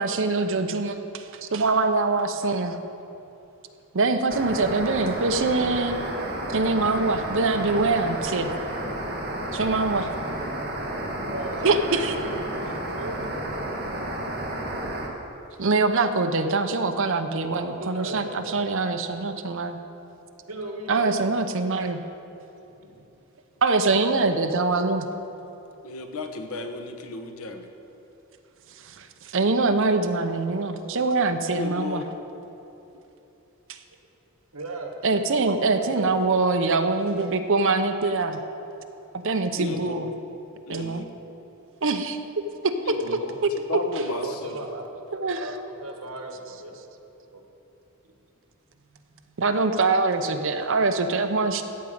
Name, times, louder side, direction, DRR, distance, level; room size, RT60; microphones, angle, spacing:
voice 1, 0.0-2.7 3.9-6.0 6.5-8.5 9.5-10.1 11.6-12.1 15.6-19.8 20.9-22.0 23.6-25.0 28.9-32.0 33.7-33.8 35.0-38.4 39.1-40.1 40.7-41.0 41.8-42.2 42.6-43.0 45.1-45.4 49.4-51.6, right 3 dB, 60° right, 8 dB, 0.8 m, -24 dB
sound 1, 4.3-15.1, right 1 dB, 45° right, 1.7 m, -31 dB
voice 2, 11.3-12.6 13.0-13.2 17.5-18.6 20.5-21.3 22.5-23.0 34.5-35.2 35.7-36.2 43.0-43.3 44.1-46.7 47.3-47.4 48.0-48.1 49.1-49.3, right 2 dB, 85° right, 2 dB, 1.7 m, -37 dB
voice 3, 25.8-27.7 31.5-32.1 39.6-40.1 40.7-41.1 42.8-43.4 43.7-44.6, left 3 dB, 80° left, 5 dB, 1.1 m, -34 dB
14.5 x 5.2 x 8.8 m, 3.0 s
head